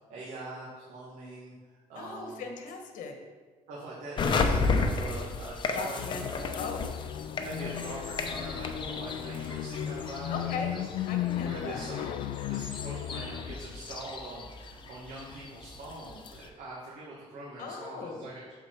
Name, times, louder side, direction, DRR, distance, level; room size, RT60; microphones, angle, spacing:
voice 1, 0.1-1.5 1.9-2.4 3.7-6.5 7.3-10.9 11.2-18.4, right 2 dB, 85° right, -6 dB, 1.8 m, -43 dB
voice 2, 1.9-3.1 5.7-6.3 6.5-6.8 10.3-10.7 11.1-11.9 17.6-18.3, left 4 dB, 85° left, 3 dB, 1.3 m, -38 dB
sound 1, 4.2-16.5, left 4 dB, 35° left, 0.7 m, -34 dB
sound 2, 6.0-13.6, left 11 dB, 60° left, 0.4 m, -36 dB
7.1 x 6.9 x 4.5 m, 1.4 s
cardioid pair, 160°, 13 cm